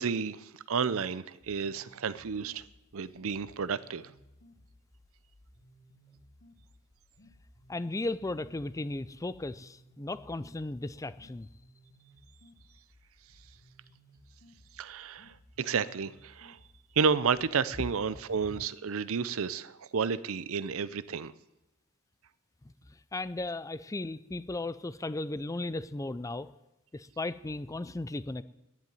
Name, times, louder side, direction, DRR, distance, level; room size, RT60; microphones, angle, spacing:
voice 1, 0.0-2.6 2.9-4.0 14.8-16.6 17.0-21.3, right 5 dB, 70° right, 0.6 m, -31 dB
sound 1, 1.4-17.4, equal, 60° left, 2.7 m, -60 dB
voice 2, 7.7-11.5 23.1-26.5 26.9-28.4, left 2 dB, 15° left, 0.4 m, -36 dB
11.0 x 10.5 x 9.3 m
head